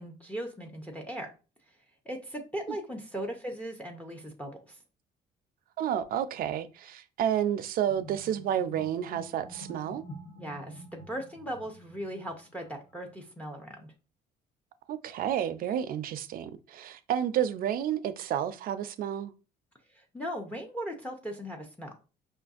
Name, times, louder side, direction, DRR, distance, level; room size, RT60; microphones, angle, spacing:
voice 1, 0.0-1.3 2.1-4.8 10.4-13.9 19.9-21.9, equal, 10° left, 0.6 m, -38 dB
voice 2, 5.8-10.0 14.9-19.3, right 10 dB, 60° right, 0.4 m, -30 dB
sound 1, 7.9-13.2, right 1 dB, 65° left, 1.1 m, -48 dB
5.4 x 2.5 x 2.4 m
cardioid pair, 110°, 17 cm